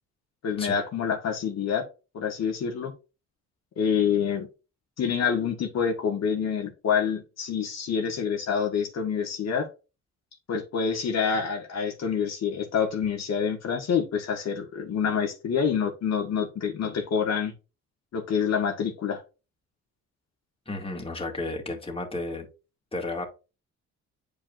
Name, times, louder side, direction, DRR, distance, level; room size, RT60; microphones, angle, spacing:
voice 1, 0.4-1.8 2.1-2.9 3.8-4.5 5.0-9.7 10.5-17.5 18.1-19.2, left 7 dB, 60° left, 1.6 m, -27 dB
voice 2, 20.7-22.5 22.9-23.3, left 2 dB, 20° left, 2.2 m, -32 dB
8.4 x 5.1 x 2.5 m
cardioid pair, 90°, 30 cm